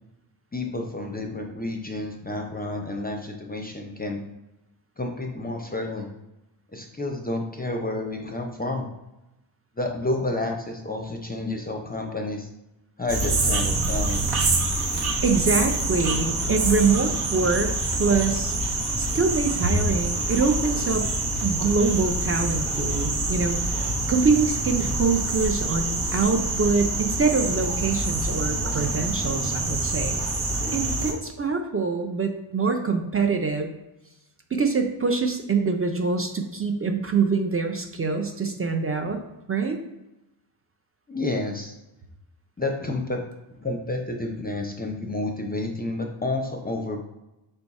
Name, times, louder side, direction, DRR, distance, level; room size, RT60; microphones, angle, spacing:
voice 1, 0.5-4.2 5.0-6.1 6.7-8.9 9.8-12.5 13.0-14.3 41.1-41.7 42.6-43.2 43.6-47.0, left 2 dB, 20° left, 2 dB, 0.5 m, -30 dB
sound 1, 13.1-31.1, right 2 dB, 80° right, 1.1 m, -26 dB
voice 2, 15.2-17.7 18.0-18.5 19.0-21.1 21.4-23.8 24.1-30.2 30.7-33.7 34.5-39.2 39.5-39.8, right 4 dB, 30° right, 5 dB, 0.5 m, -24 dB
5.3 x 2.3 x 4.1 m, 0.96 s
cardioid pair, 95°, 49 cm